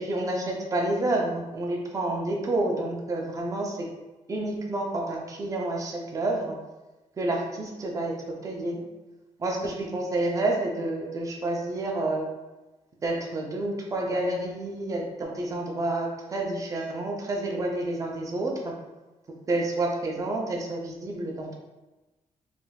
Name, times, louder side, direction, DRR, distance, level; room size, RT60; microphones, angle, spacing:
voice 1, 0.0-3.8 4.3-6.6 7.2-8.1 8.4-8.8 9.4-12.3 13.0-18.7 19.5-21.6, right 2 dB, 25° right, 0 dB, 0.5 m, -29 dB
4.0 x 2.5 x 2.3 m, 1.1 s
wide cardioid pair, 150°, 12 cm